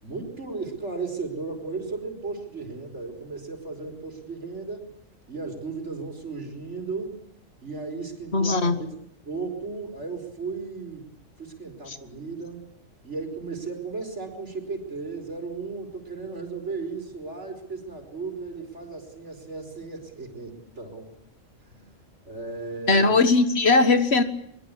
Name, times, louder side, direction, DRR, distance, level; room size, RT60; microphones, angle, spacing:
voice 1, 0.0-4.9 5.3-7.2 7.6-8.9 9.2-11.0 11.4-12.6 13.0-21.1 21.7-21.9 22.2-23.2, right 4 dB, 60° right, 5 dB, 5.3 m, -35 dB
voice 2, 8.3-8.8 11.9-12.0 22.9-24.2, left 3 dB, 55° left, 10 dB, 1.7 m, -19 dB
23.5 x 23.0 x 8.6 m, 0.72 s
omnidirectional pair, 1.3 m